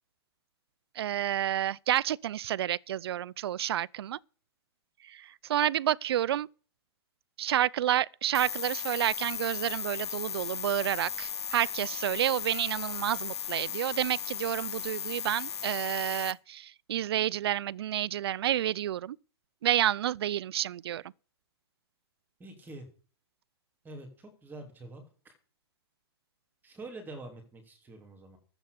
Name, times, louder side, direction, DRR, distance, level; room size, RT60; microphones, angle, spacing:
voice 1, 1.0-4.2 5.0-6.5 7.4-19.2 19.6-21.0, right 12 dB, 70° right, 0.5 m, -30 dB
sound 1, 8.3-16.3, left 8 dB, 85° left, 1.1 m, -36 dB
voice 2, 22.4-22.9 23.8-25.3 26.6-28.4, right 2 dB, 15° right, 3.2 m, -46 dB
13.5 x 8.0 x 6.7 m
hypercardioid pair, 140°, 14 cm